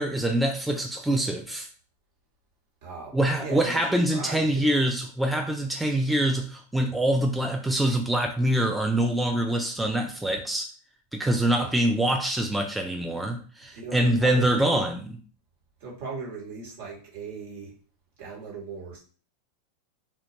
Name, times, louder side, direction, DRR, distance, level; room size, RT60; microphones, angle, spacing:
voice 1, 0.0-1.7 3.1-10.7 11.1-15.2, right 1 dB, 5° right, 0.3 m, -25 dB
voice 2, 2.8-4.7 11.5-11.7 13.7-14.8 15.8-17.8 18.2-19.0, right 4 dB, 65° right, 1.2 m, -38 dB
2.2 x 2.2 x 2.8 m
hypercardioid pair, 105°, 0 cm